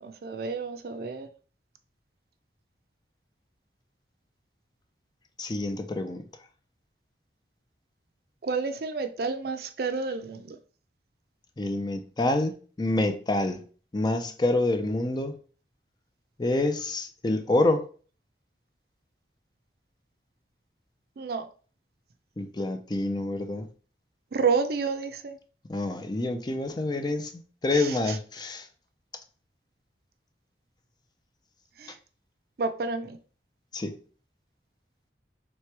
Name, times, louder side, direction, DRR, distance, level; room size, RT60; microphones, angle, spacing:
voice 1, 0.0-1.3 8.4-10.6 21.2-21.5 24.3-25.4 27.7-28.2 31.8-32.0 32.6-33.2, right 4 dB, 60° right, 0.5 m, -30 dB
voice 2, 5.4-6.2 11.6-13.6 13.9-15.4 16.4-17.9 22.4-23.7 25.7-28.7 33.7-33.9, left 2 dB, 25° left, 0.4 m, -27 dB
3.3 x 3.1 x 4.5 m
head